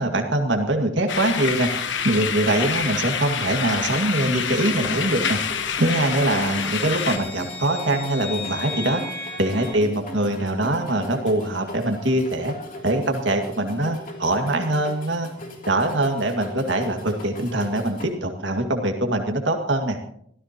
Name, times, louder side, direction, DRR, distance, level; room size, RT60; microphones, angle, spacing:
voice 1, 0.0-1.7 2.0-5.4 5.8-9.0 9.4-12.5 12.8-15.3 15.7-20.0, right 1 dB, 65° right, 4 dB, 2.1 m, -23 dB
sound 1, 1.1-7.2, left 7 dB, 70° left, 1.2 m, -27 dB
sound 2, 3.0-9.7, left 3 dB, 15° left, 4.5 m, -38 dB
sound 3, 4.6-18.1, left 1 dB, 45° left, 3.0 m, -39 dB
24.0 x 14.5 x 3.0 m, 0.68 s
head